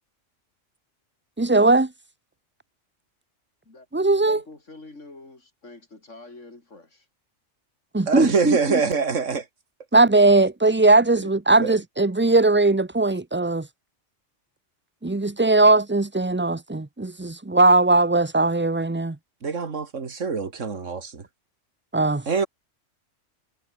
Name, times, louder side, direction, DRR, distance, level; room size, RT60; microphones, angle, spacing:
voice 1, 1.4-1.9 3.9-4.4 7.9-8.6 9.9-13.7 15.0-19.2 21.9-22.2, right 2 dB, 10° right, 0.6 m, -19 dB
voice 2, 4.3-7.1, left 2 dB, 80° left, 4.6 m, -46 dB
voice 3, 8.1-9.5 11.2-11.3 11.6-11.8 19.4-21.2 22.3-22.5, right 5 dB, 85° right, 2.3 m, -25 dB
omnidirectional pair, 1.2 m